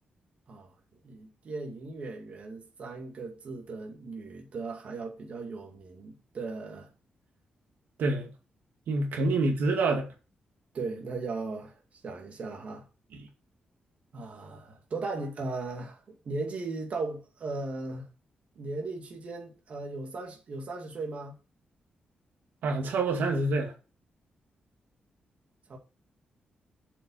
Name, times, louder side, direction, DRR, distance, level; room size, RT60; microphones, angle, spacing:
voice 1, 1.0-6.9 9.2-9.3 10.7-11.8 12.0-12.8 14.1-18.1 18.6-21.4 25.7-25.8, right 3 dB, 45° right, 2.3 m, -37 dB
voice 2, 8.0-8.3 8.9-10.1 13.1-13.2 22.6-23.7, right 3 dB, 90° right, 2.2 m, -27 dB
7.7 x 5.9 x 5.7 m
wide cardioid pair, 155°, 3 cm